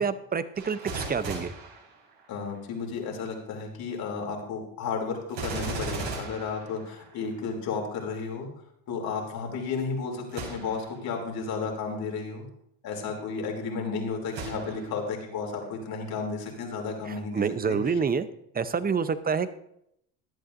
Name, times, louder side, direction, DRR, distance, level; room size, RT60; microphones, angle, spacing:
voice 1, 0.0-1.5 17.1-18.3 18.5-19.5, right 5 dB, 25° right, 13 dB, 0.7 m, -27 dB
Gunshot gunfire, 0.6-2.6 5.3-7.4 10.3-10.9 11.6-11.7 14.3-15.1 15.6-15.7, right 3 dB, 70° right, 4.7 m, -37 dB
voice 2, 2.3-8.5 8.9-12.5 12.8-18.0, left 5 dB, 60° left, 1 dB, 3.0 m, -33 dB
15.5 x 11.0 x 2.6 m, 0.73 s
supercardioid pair, 90°, 40 cm